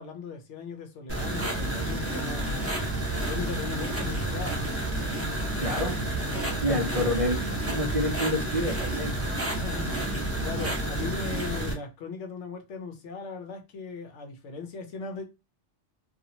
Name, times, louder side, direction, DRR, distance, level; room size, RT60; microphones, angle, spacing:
voice 1, 0.0-2.9 3.1-4.6 6.3-7.2 9.5-15.2, left 4 dB, 75° left, 1.0 m, -39 dB
sound 1, 1.1-11.7, right 1 dB, 15° right, 0.9 m, -30 dB
voice 2, 5.6-6.0 6.6-9.1, left 1 dB, 40° right, 0.5 m, -28 dB
2.7 x 2.4 x 2.8 m
omnidirectional pair, 1.2 m